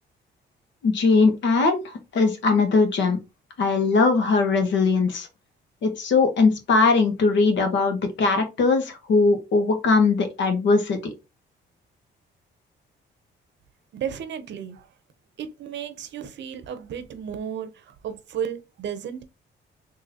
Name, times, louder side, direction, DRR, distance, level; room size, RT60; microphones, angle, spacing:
voice 1, 0.8-1.8 2.1-3.2 3.6-5.3 5.8-11.1, left 4 dB, 70° left, 1.1 m, -20 dB
voice 2, 13.9-14.9 15.4-19.2, right 8 dB, 65° right, 0.7 m, -33 dB
3.8 x 2.7 x 2.8 m
cardioid pair, 90°, 20 cm